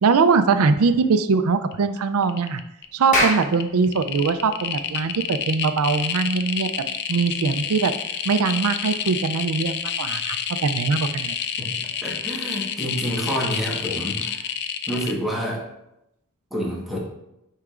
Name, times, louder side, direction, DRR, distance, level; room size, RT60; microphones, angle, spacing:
voice 1, 0.0-2.6 2.9-6.7 7.1-7.9 8.2-11.3, right 4 dB, 75° right, 10 dB, 0.4 m, -21 dB
sound 1, 1.7-2.8 3.2-15.1, left 8 dB, 50° left, 0.4 m, -29 dB
Clapping, 2.9-7.8, left 1 dB, 35° left, 1.2 m, -29 dB
voice 2, 11.6-14.5 14.9-15.6 16.5-17.0, equal, ahead, -4 dB, 1.3 m, -28 dB
9.5 x 4.8 x 2.5 m, 0.85 s
head